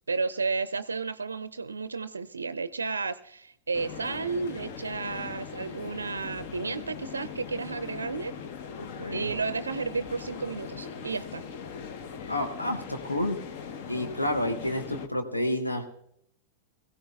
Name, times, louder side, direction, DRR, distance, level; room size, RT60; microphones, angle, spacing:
voice 1, 0.1-8.3 9.1-11.4, right 4 dB, 75° right, 14 dB, 0.4 m, -32 dB
sound 1, 3.7-15.1, left 6 dB, 50° left, 1.1 m, -40 dB
voice 2, 8.8-9.3 12.3-13.5 13.9-15.9, left 1 dB, 85° left, 4 dB, 1.2 m, -30 dB
22.0 x 16.0 x 2.4 m, 0.77 s
figure-of-eight pair, 90°, 0 cm